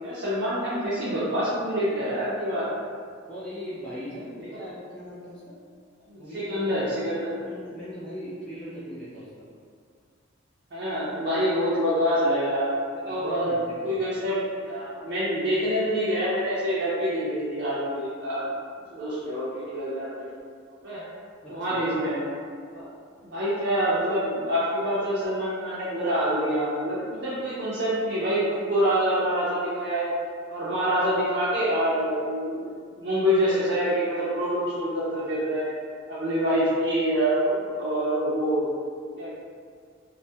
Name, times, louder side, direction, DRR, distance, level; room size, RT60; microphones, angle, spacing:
voice 1, 0.0-2.6 4.5-4.6 6.1-7.3 10.7-12.7 13.0-18.5 18.9-20.3 20.8-21.0 21.5-22.3 22.7-22.9 23.2-30.1 30.5-35.8 36.1-38.7 39.2-39.3, equal, 55° right, -11 dB, 0.5 m, -26 dB
voice 2, 3.3-5.6 6.2-6.5 7.4-9.4 13.1-13.9 21.4-21.8, equal, 5° left, -11 dB, 0.4 m, -39 dB
2.2 x 2.1 x 2.6 m, 2.1 s
head